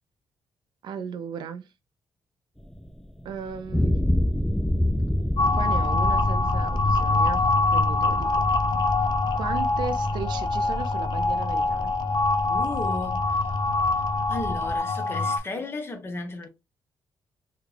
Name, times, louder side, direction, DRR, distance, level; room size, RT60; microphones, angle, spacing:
voice 1, 0.8-1.7 3.2-4.0 5.5-8.4 9.3-11.9, right 7 dB, 75° right, 0.5 m, -36 dB
sound 1, 2.6-14.8, left 1 dB, ahead, 0.3 m, -29 dB
sound 2, 5.4-15.4, left 3 dB, 70° left, 0.6 m, -24 dB
voice 2, 12.5-13.5 13.9-14.0 14.3-16.5, left 2 dB, 30° left, 1.0 m, -35 dB
3.6 x 2.3 x 3.2 m
cardioid pair, 95°, 8 cm